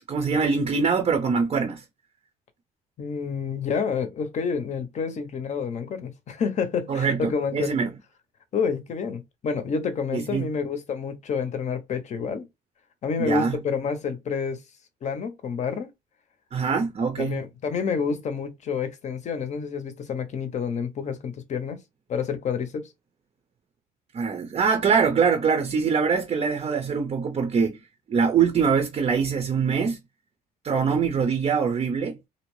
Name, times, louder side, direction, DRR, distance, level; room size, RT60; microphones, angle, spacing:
voice 1, 0.1-1.8 6.9-7.9 10.1-10.5 13.2-13.6 16.5-17.4 24.1-27.8 28.1-30.0 30.6-32.2, right 6 dB, 35° right, 0.6 m, -23 dB
voice 2, 3.0-7.8 8.5-12.5 13.0-14.6 15.0-15.9 16.7-16.8 17.2-21.8 22.1-22.9, left 6 dB, 45° left, 0.7 m, -29 dB
2.6 x 2.0 x 3.0 m
cardioid pair, 110°, 17 cm